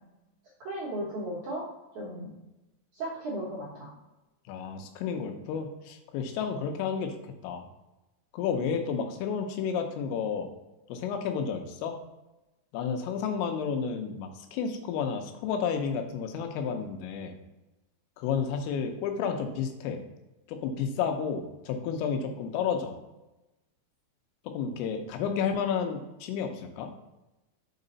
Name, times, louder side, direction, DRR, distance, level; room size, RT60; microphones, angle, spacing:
voice 1, 0.6-1.6 1.9-2.3 2.9-3.9 25.3-25.6, equal, 70° right, -7 dB, 1.8 m, -35 dB
voice 2, 4.5-7.7 8.3-10.5 10.9-12.0 12.7-17.3 18.2-20.0 20.5-22.9 24.5-26.9, left 6 dB, 90° left, 5 dB, 3.4 m, -31 dB
6.4 x 4.9 x 3.9 m, 1.0 s
omnidirectional pair, 5.7 m